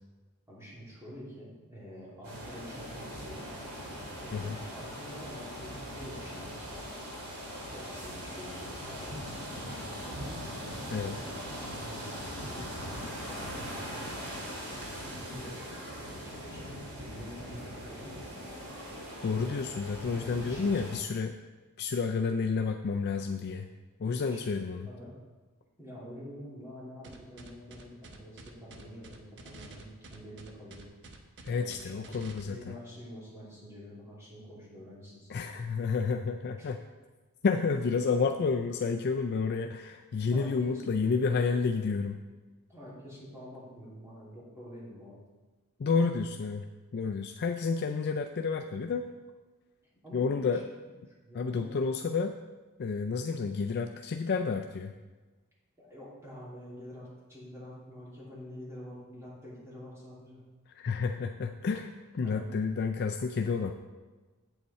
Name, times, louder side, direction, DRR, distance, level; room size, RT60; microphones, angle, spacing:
voice 1, 0.5-3.5 4.2-6.8 7.6-10.2 11.3-14.3 14.7-18.3 20.3-20.8 24.3-25.1 25.8-30.8 31.5-35.6 36.6-36.7 38.0-38.3 40.3-40.9 42.7-45.2 50.0-50.9 51.2-51.8 55.8-60.4 62.2-62.5, equal, 10° right, -7 dB, 3.0 m, -47 dB
sound 1, 2.2-21.0, equal, 70° right, 2.5 m, -41 dB
voice 2, 19.2-21.3 21.8-23.7 24.0-24.9 31.4-32.7 35.3-36.8 37.4-42.2 45.8-46.7 46.9-49.1 50.1-50.6 51.3-52.3 52.8-54.9 60.7-63.7, left 5 dB, 45° left, 5 dB, 0.4 m, -30 dB
sound 2, 27.0-32.4, right 2 dB, 55° right, 0.9 m, -49 dB
8.1 x 7.9 x 4.2 m, 1.3 s
head